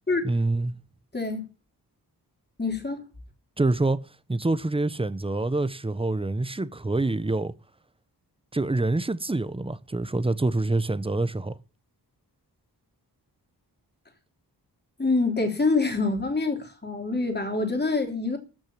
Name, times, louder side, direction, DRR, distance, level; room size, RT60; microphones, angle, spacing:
voice 1, 0.2-0.7 3.6-4.0 4.3-7.5 8.5-11.5, right 2 dB, 15° right, 0.9 m, -26 dB
voice 2, 1.1-1.4 2.6-3.0 15.0-18.4, left 3 dB, 25° left, 3.3 m, -26 dB
14.0 x 6.4 x 8.7 m
wide cardioid pair, 110°, 39 cm